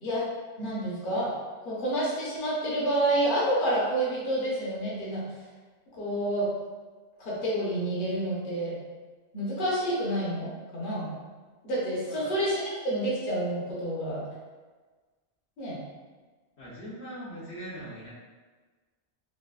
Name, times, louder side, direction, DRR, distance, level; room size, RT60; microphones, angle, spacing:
voice 1, 0.6-1.3 1.6-5.2 5.9-6.5 7.2-8.8 9.3-11.1 11.6-14.2 15.6-15.8, right 1 dB, 50° left, -7 dB, 1.0 m, -29 dB
voice 2, 16.6-18.1, right 1 dB, 80° left, -8 dB, 1.1 m, -41 dB
3.2 x 2.5 x 2.3 m, 1.3 s
omnidirectional pair, 1.1 m